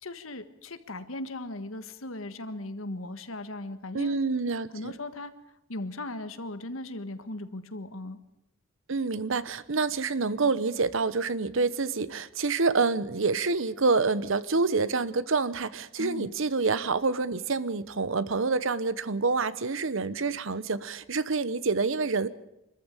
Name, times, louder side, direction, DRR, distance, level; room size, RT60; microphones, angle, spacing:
voice 1, 0.0-4.2 4.7-5.3 5.7-8.2 16.0-16.3, left 2 dB, 80° left, 10 dB, 1.6 m, -38 dB
voice 2, 3.9-4.9 8.9-22.3, right 4 dB, 70° right, 16 dB, 1.0 m, -27 dB
25.5 x 14.0 x 9.0 m, 0.88 s
head